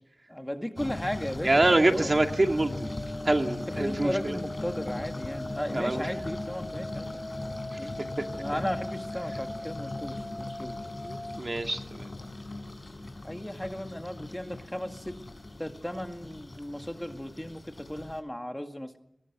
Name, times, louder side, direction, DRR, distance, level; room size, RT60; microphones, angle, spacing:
voice 1, 0.3-2.1 3.7-7.3 7.8-8.0 8.4-10.8 13.2-15.2 15.6-19.0, equal, 10° left, 6 dB, 2.1 m, -36 dB
sound 1, 0.8-18.2, left 2 dB, 45° left, 4.8 m, -39 dB
voice 2, 1.4-2.9 3.2-4.4 5.7-6.1 11.0-12.1, right 2 dB, 40° right, 5 dB, 2.4 m, -25 dB
sound 2, 2.3-11.4, left 1 dB, 25° left, 1.4 m, -40 dB
30.0 x 22.5 x 6.2 m, 0.80 s
wide cardioid pair, 60°, 0 cm